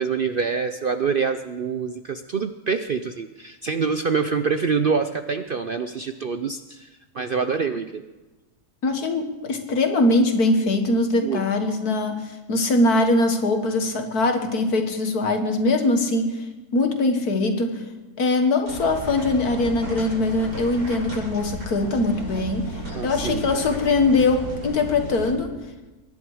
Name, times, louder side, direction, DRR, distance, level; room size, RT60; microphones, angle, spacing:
voice 1, 0.0-6.9 7.1-8.0 11.2-11.4 22.9-23.4, right 5 dB, 55° right, 8 dB, 0.6 m, -25 dB
voice 2, 8.8-16.4 16.7-17.8 18.2-22.7 23.0-25.5, left 2 dB, 80° left, 5 dB, 2.2 m, -22 dB
sound 1, 18.7-25.3, right 1 dB, 90° right, 6.9 m, -34 dB
24.0 x 11.0 x 4.9 m, 1.2 s
omnidirectional pair, 1.6 m